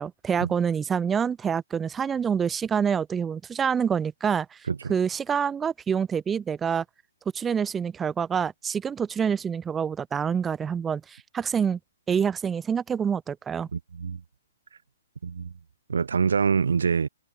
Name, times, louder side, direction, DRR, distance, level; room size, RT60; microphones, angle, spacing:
voice 1, 0.0-4.6 4.9-6.8 7.3-11.8 12.1-13.7, right 7 dB, 15° right, 3.0 m, -26 dB
voice 2, 13.7-14.2 15.2-15.5 15.9-17.1, right 6 dB, 75° right, 2.1 m, -25 dB
hypercardioid pair, 130°, 0 cm